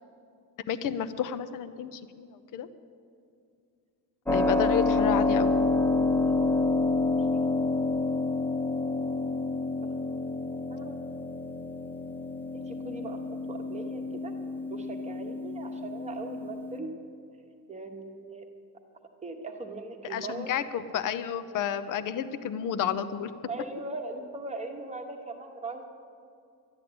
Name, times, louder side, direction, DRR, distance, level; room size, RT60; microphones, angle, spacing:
voice 1, 0.7-2.7 4.3-5.6 20.1-23.3, left 8 dB, 55° left, 12 dB, 0.8 m, -31 dB
Keyboard (musical), 4.3-16.8, left 3 dB, 5° left, 0.4 m, -28 dB
voice 2, 6.2-6.6 7.3-7.4 9.8-9.9 10.7-11.0 12.5-13.2 13.5-14.4 14.7-16.9 17.7-18.5 19.2-20.5 23.5-25.9, right 3 dB, 20° right, 3 dB, 1.1 m, -39 dB
11.5 x 11.5 x 8.6 m, 2.4 s
cardioid pair, 175°, 38 cm